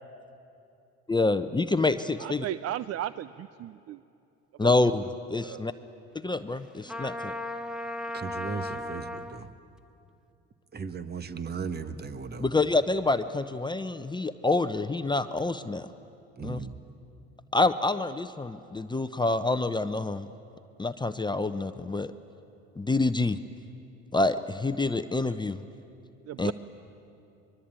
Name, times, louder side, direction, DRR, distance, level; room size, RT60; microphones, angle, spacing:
voice 1, 1.1-2.5 4.6-5.7 6.2-7.3 12.4-15.9 16.4-16.6 17.5-20.3 20.8-22.1 22.8-23.4 24.1-25.6 26.4-26.5, left 3 dB, 15° left, 9 dB, 0.8 m, -27 dB
voice 2, 2.2-4.0 4.6-4.7 5.4-5.6 26.3-26.5, right 12 dB, 55° right, 16 dB, 0.5 m, -35 dB
Trumpet, 6.9-9.4, left 1 dB, ahead, 1.2 m, -35 dB
voice 3, 8.1-9.5 10.7-12.5 16.4-16.8, right 5 dB, 30° right, 11 dB, 1.4 m, -36 dB
24.5 x 22.5 x 9.0 m, 2.7 s
supercardioid pair, 80°, 30 cm